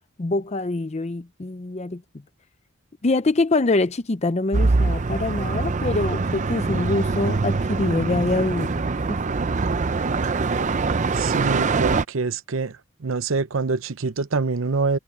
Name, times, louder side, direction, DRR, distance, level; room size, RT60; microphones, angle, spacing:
voice 1, 0.2-2.0 3.0-8.8 9.1-9.2, left 2 dB, 30° left, 0.6 m, -24 dB
sound 1, 4.5-12.0, right 3 dB, 35° right, 0.5 m, -23 dB
voice 2, 11.1-15.0, right 4 dB, 70° right, 0.7 m, -25 dB
head